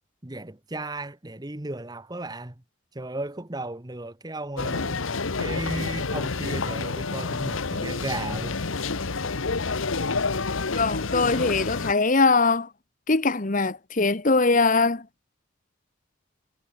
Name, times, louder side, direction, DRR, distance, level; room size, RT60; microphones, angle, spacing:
voice 1, 0.2-2.5 2.9-5.0 5.4-8.6, right 2 dB, 20° right, 1.2 m, -35 dB
sound 1, 4.6-11.9, left 4 dB, 80° left, 1.2 m, -28 dB
voice 2, 10.8-12.7 13.1-15.1, left 3 dB, 40° left, 1.2 m, -22 dB
head